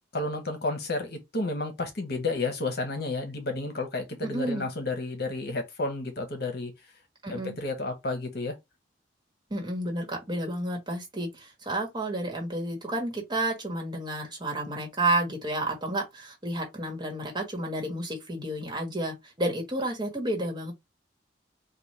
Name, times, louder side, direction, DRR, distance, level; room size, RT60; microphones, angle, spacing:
voice 1, 0.1-6.7 7.3-8.5, left 2 dB, 55° left, 1.0 m, -31 dB
voice 2, 4.2-4.7 7.2-7.6 9.5-20.7, right 1 dB, 25° right, 1.3 m, -31 dB
4.2 x 2.3 x 3.3 m
head